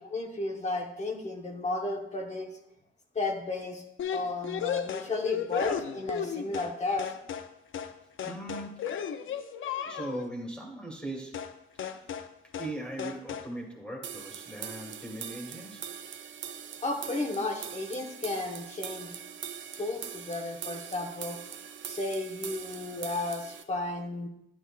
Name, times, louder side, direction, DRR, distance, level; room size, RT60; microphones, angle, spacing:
voice 1, 0.0-2.5 3.1-3.8 4.1-7.1 16.8-19.2 19.8-21.4 21.8-24.3, left 2 dB, 35° left, 1 dB, 1.2 m, -33 dB
sound 1, 4.0-6.7 7.0-7.5 7.7-7.9 8.2-10.3 11.3-11.5 11.8-12.3 12.5-12.7 13.0-13.5, left 8 dB, 85° left, 0.6 m, -34 dB
voice 2, 8.2-8.8 9.8-11.5 11.8-11.9 12.6-15.9, right 1 dB, 5° left, 0 dB, 1.7 m, -39 dB
sound 2, 14.0-23.6, right 8 dB, 75° right, 0.6 m, -42 dB
11.0 x 10.5 x 2.4 m, 0.80 s
wide cardioid pair, 165°, 20 cm